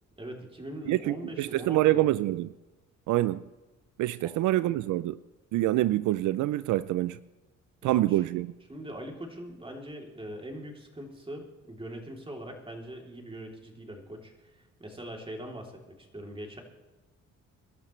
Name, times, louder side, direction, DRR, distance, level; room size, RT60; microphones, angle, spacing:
voice 1, 0.2-2.2 4.2-4.3 7.8-8.2 8.7-16.6, right 1 dB, 20° right, 3.1 m, -42 dB
voice 2, 0.9-2.5 3.1-3.4 4.0-5.2 5.5-7.2 7.8-8.5, right 15 dB, 80° right, 0.5 m, -26 dB
24.5 x 12.5 x 3.2 m
cardioid pair, 90°, 30 cm